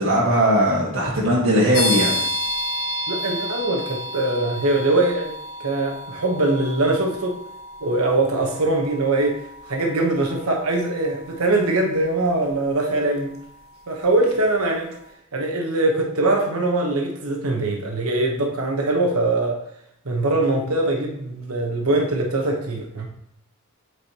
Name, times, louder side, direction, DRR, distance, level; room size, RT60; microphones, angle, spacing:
voice 1, 0.0-2.2, right 1 dB, 70° right, -5 dB, 1.7 m, -19 dB
sound 1, 1.7-14.3, left 1 dB, 70° left, 1.2 m, -32 dB
voice 2, 3.1-7.4 7.8-9.4 9.7-13.3 13.9-14.9 15.3-19.6 20.0-23.1, right 2 dB, 85° right, 2 dB, 1.2 m, -22 dB
8.1 x 4.9 x 3.0 m, 0.75 s
head